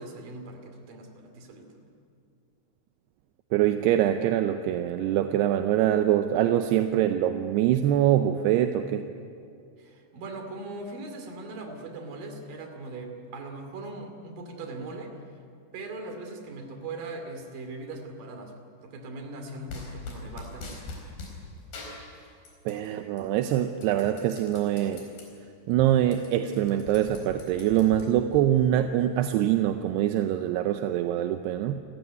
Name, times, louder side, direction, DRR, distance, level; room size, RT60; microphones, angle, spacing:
voice 1, 0.0-1.8 9.8-15.2 15.7-18.5 18.8-20.8, right 2 dB, 60° right, 5 dB, 4.1 m, -40 dB
voice 2, 3.5-9.1 22.7-25.0 25.7-31.8, right 11 dB, 80° right, 7 dB, 2.8 m, -24 dB
sound 1, 19.7-21.4 21.7-22.9 23.2-25.3 25.7-25.8 26.0-28.4, left 3 dB, 65° left, 6.3 m, -42 dB
29.5 x 15.0 x 9.4 m, 2.4 s
omnidirectional pair, 4.8 m